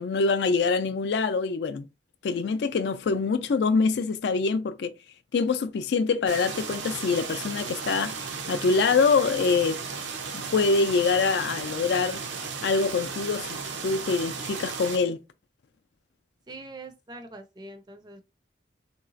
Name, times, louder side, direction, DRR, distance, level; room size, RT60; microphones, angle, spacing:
voice 1, 0.0-1.9 2.2-4.9 5.3-9.8 10.3-12.2 12.6-15.2, left 4 dB, 65° left, 0.4 m, -25 dB
sound 1, 6.3-15.0, right 5 dB, 80° right, 0.6 m, -35 dB
voice 2, 16.5-18.2, right 2 dB, 25° right, 0.4 m, -43 dB
3.2 x 2.9 x 2.5 m
head